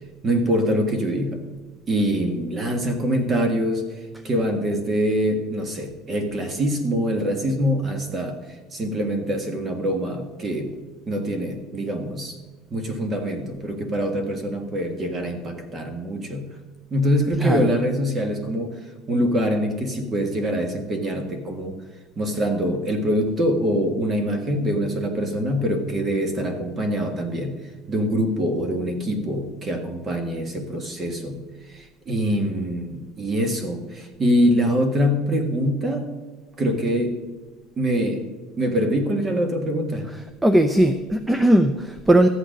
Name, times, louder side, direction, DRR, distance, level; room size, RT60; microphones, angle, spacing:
voice 1, 0.2-1.4 1.9-3.9 4.2-8.4 8.7-10.7 11.1-12.3 12.7-16.5 16.9-18.7 19.1-21.8 22.2-27.5 27.9-31.4 31.7-36.1 36.6-37.2 37.8-38.2 38.6-40.1, equal, 20° right, 6 dB, 1.7 m, -24 dB
voice 2, 40.4-42.3, right 1 dB, 5° right, 9 dB, 0.5 m, -18 dB
13.5 x 8.9 x 5.2 m, 1.4 s
cardioid pair, 165°, 0 cm